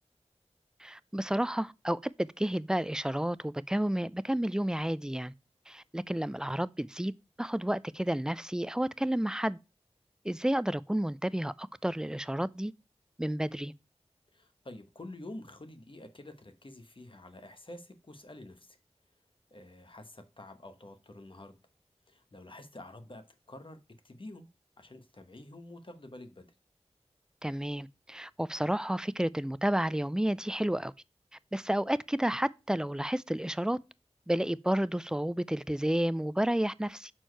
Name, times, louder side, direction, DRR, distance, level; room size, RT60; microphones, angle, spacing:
voice 1, 0.8-5.3 5.7-7.1 7.4-9.6 10.2-12.7 13.2-13.7 27.4-30.9 31.5-33.8 34.3-37.1, right 1 dB, 5° right, 0.3 m, -31 dB
voice 2, 14.3-18.8 19.5-21.6 22.1-23.8 24.0-24.5 24.8-26.5, left 1 dB, 50° left, 1.1 m, -48 dB
6.4 x 4.4 x 4.5 m
wide cardioid pair, 55°, 11 cm